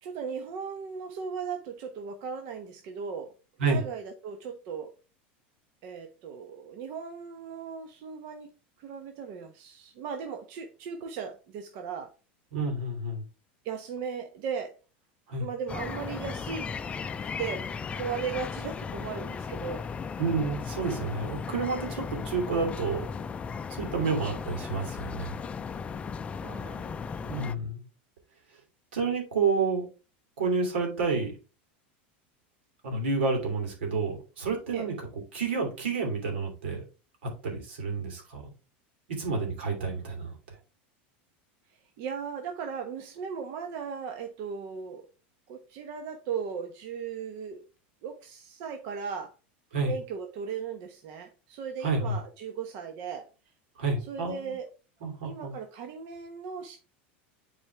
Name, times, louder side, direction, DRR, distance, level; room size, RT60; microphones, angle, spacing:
voice 1, 0.0-3.3 3.7-4.9 5.8-8.5 8.8-12.1 13.6-14.8 15.4-16.7 17.2-17.7 18.0-19.9 26.3-26.9 34.7-34.9 42.0-45.1 45.5-47.6 48.0-49.3 49.8-53.3 54.1-54.7 55.2-56.8, right 6 dB, 60° right, 5 dB, 1.0 m, -37 dB
voice 2, 12.5-13.2 15.3-15.5 20.2-23.1 23.7-25.3 27.2-27.8 28.9-29.9 30.4-31.3 32.8-34.9 35.3-36.8 37.2-38.5 39.2-40.4 49.7-49.9 51.8-52.2 53.8-54.5 55.0-55.5, right 4 dB, 85° right, 2 dB, 2.9 m, -29 dB
sound 1, 15.7-27.5, left 5 dB, 20° left, 0.4 m, -36 dB
7.9 x 4.3 x 3.4 m, 0.33 s
supercardioid pair, 120°, 6 cm